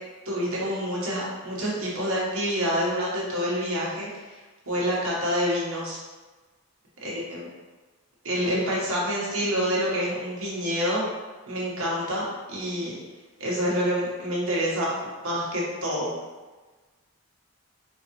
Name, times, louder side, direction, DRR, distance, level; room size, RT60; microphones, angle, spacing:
voice 1, 0.2-6.0 7.0-7.4 8.2-11.0 11.5-12.9 13.4-16.1, equal, 75° right, -6 dB, 1.4 m, -27 dB
4.3 x 3.6 x 3.1 m, 1.3 s
head